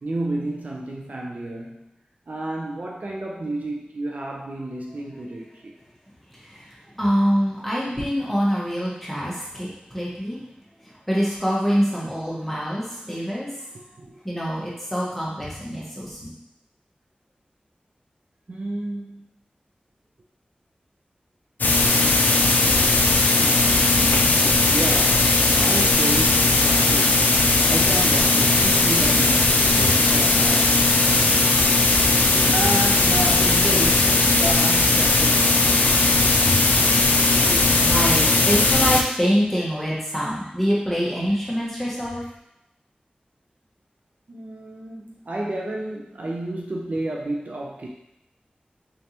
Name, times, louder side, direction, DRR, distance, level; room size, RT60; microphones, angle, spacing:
voice 1, 0.0-1.9 2.3-5.7 13.7-14.1 18.5-19.2 24.0-31.3 32.4-35.8 44.3-47.9, right 1 dB, 60° right, -1 dB, 0.5 m, -31 dB
voice 2, 7.0-9.7 9.9-10.4 10.8-13.5 14.2-16.3 31.9-32.5 36.4-36.6 37.4-42.2, equal, 5° left, -6 dB, 1.1 m, -25 dB
sound 1, 21.6-39.0, left 3 dB, 85° left, 0.4 m, -18 dB
3.8 x 3.3 x 2.9 m, 0.85 s
wide cardioid pair, 55°, 3 cm